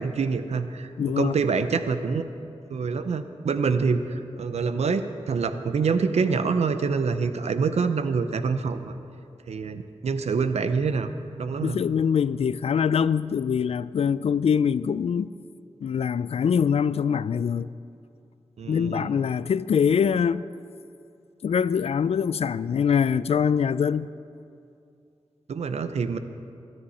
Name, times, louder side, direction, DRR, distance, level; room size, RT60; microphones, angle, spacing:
voice 1, 0.0-2.2 2.7-8.9 9.5-11.1 11.4-11.8 18.6-19.2 25.5-26.2, right 5 dB, 80° right, 0.7 m, -26 dB
voice 2, 1.0-1.3 11.6-15.3 15.8-17.7 18.7-20.5 21.4-24.1, left 7 dB, 70° left, 0.4 m, -23 dB
22.5 x 10.0 x 4.3 m
cardioid pair, 70°, 11 cm